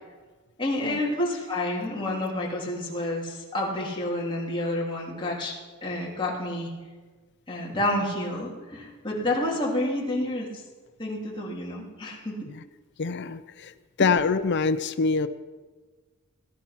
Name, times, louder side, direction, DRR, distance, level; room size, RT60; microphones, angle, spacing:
voice 1, 0.6-5.5 5.8-6.7 7.5-10.5 11.0-12.3, left 1 dB, 25° left, -3 dB, 3.0 m, -29 dB
voice 2, 13.0-13.4 14.0-15.3, left 4 dB, 55° left, 12 dB, 0.6 m, -24 dB
18.0 x 11.0 x 5.8 m, 1.4 s
head